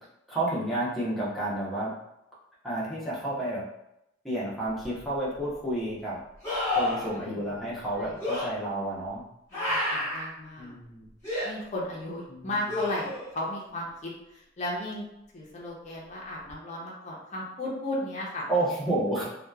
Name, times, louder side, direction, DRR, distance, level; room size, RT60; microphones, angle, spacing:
voice 1, 0.3-1.9 2.6-3.6 4.2-6.2 6.8-9.2 10.6-11.1 12.3-12.5 18.5-19.2, right 1 dB, ahead, -8 dB, 0.7 m, -30 dB
sound 1, 4.8-4.9 6.4-7.1 8.2-8.5 9.5-10.3 11.2-11.5 12.7-13.3 16.5-16.6, left 1 dB, 15° left, 1.0 m, -29 dB
voice 2, 7.1-8.2 9.5-10.7 11.4-15.0 15.3-18.4, left 1 dB, 35° left, -4 dB, 0.6 m, -35 dB
2.7 x 2.3 x 2.3 m, 0.85 s
head